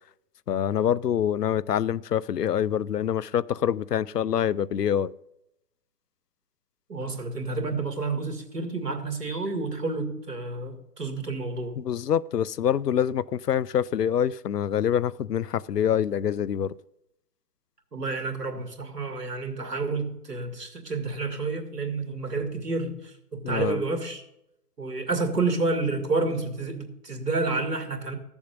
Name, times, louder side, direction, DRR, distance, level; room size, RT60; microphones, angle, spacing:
voice 1, 0.5-5.1 11.8-16.7 23.4-23.8, left 9 dB, 85° left, 0.6 m, -25 dB
voice 2, 6.9-11.8 17.9-24.2 24.8-28.2, right 3 dB, 85° right, 2.4 m, -29 dB
14.5 x 7.1 x 5.2 m
figure-of-eight pair, 130°, 46 cm